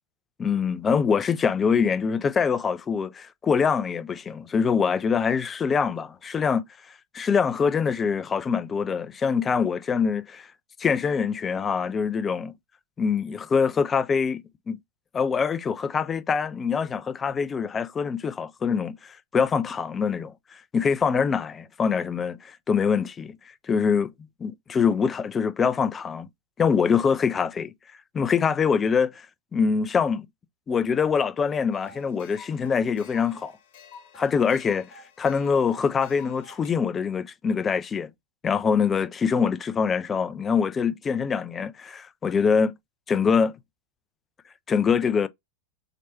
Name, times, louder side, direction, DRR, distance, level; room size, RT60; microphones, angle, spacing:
voice 1, 0.4-6.6 7.1-10.5 10.8-12.5 13.0-14.8 15.1-20.3 20.7-23.3 23.7-24.1 24.4-26.3 26.6-27.7 28.1-29.3 29.5-30.3 30.7-33.5 34.1-38.1 38.4-42.7 43.1-43.6 44.7-45.3, left 6 dB, 20° left, 0.4 m, -24 dB
sound 1, 31.7-36.7, left 4 dB, 50° left, 1.0 m, -49 dB
4.1 x 3.0 x 2.8 m
figure-of-eight pair, 90°, 0 cm